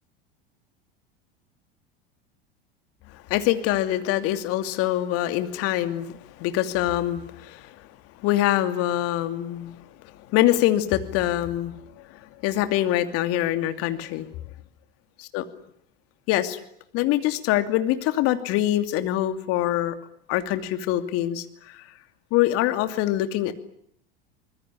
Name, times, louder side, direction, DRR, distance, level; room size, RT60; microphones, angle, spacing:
voice 1, 3.3-7.6 8.2-9.7 10.3-11.7 12.4-14.3 15.2-15.4 16.3-16.6 16.9-19.9 20.3-21.8 22.3-23.5, left 14 dB, 50° left, 9 dB, 2.8 m, -24 dB
25.0 x 21.5 x 9.9 m, 0.70 s
hypercardioid pair, 80°, 29 cm